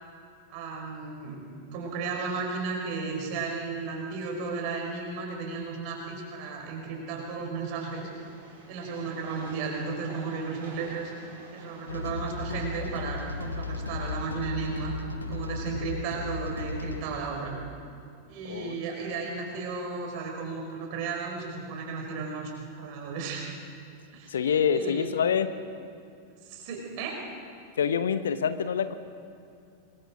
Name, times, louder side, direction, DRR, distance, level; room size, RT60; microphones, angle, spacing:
voice 1, 0.5-8.1 8.7-11.1 11.5-14.9 15.3-17.5 18.3-22.5 22.8-23.4 24.1-24.3 24.7-25.1 26.4-27.2, right 4 dB, 45° right, 0 dB, 5.2 m, -34 dB
Train, 7.7-14.3, right 3 dB, 60° right, 6.3 m, -49 dB
sound 1, 11.9-17.0, left 3 dB, 80° left, 1.3 m, -35 dB
voice 2, 24.3-25.5 27.8-28.9, left 7 dB, 65° left, 12 dB, 0.9 m, -26 dB
26.5 x 21.0 x 5.1 m, 2.5 s
figure-of-eight pair, 90°, 0 cm